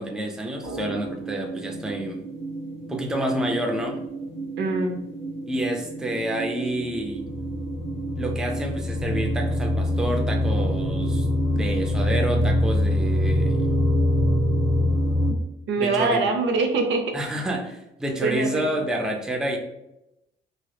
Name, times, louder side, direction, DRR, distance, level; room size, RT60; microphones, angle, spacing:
voice 1, 0.0-2.2 2.9-4.0 5.5-7.3 8.2-11.3 11.5-13.7 15.8-16.3 17.1-19.6, right 1 dB, 5° right, 2 dB, 0.4 m, -28 dB
sound 1, 0.6-15.3, equal, 30° right, 1.1 m, -25 dB
voice 2, 4.6-5.0 15.7-17.1 17.5-17.6 18.2-18.8, right 3 dB, 75° right, 4 dB, 0.5 m, -24 dB
2.7 x 2.0 x 2.2 m, 0.86 s
cardioid pair, 90°, 20 cm